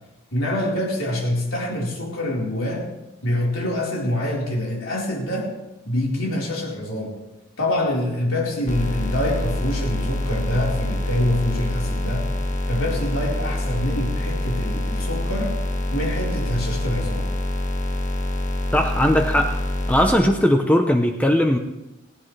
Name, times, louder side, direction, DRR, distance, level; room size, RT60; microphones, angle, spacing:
voice 1, 0.3-2.9 3.2-5.5 5.9-7.2 7.6-12.3 12.7-15.5 15.9-17.3, left 1 dB, 75° left, -3 dB, 4.3 m, -25 dB
sound 1, 8.7-20.1, left 1 dB, 35° left, 1.7 m, -26 dB
voice 2, 18.7-19.5 19.9-21.6, equal, 5° left, 4 dB, 0.7 m, -18 dB
18.5 x 16.5 x 3.3 m, 0.96 s
head